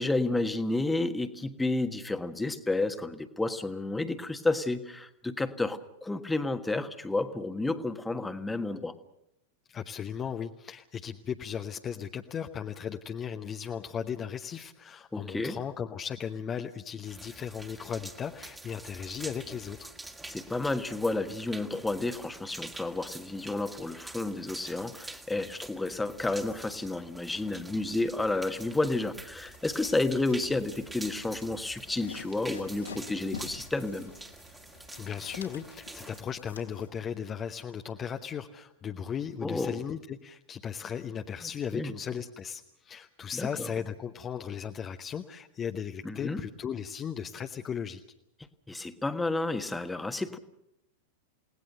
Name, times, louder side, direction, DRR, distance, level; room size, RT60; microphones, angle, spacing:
voice 1, 0.0-8.9 15.1-15.6 20.3-34.1 39.4-39.8 41.4-41.9 43.3-43.7 46.0-46.4 48.7-50.4, left 2 dB, 10° left, 9 dB, 1.5 m, -31 dB
voice 2, 9.7-19.9 34.9-48.0, left 8 dB, 25° left, 5 dB, 1.0 m, -36 dB
sound 1, 17.0-36.2, right 2 dB, 10° right, 2.0 m, -47 dB
sound 2, 29.4-36.9, left 5 dB, 75° left, 3.2 m, -48 dB
29.5 x 18.5 x 6.6 m, 0.79 s
figure-of-eight pair, 90°, 0 cm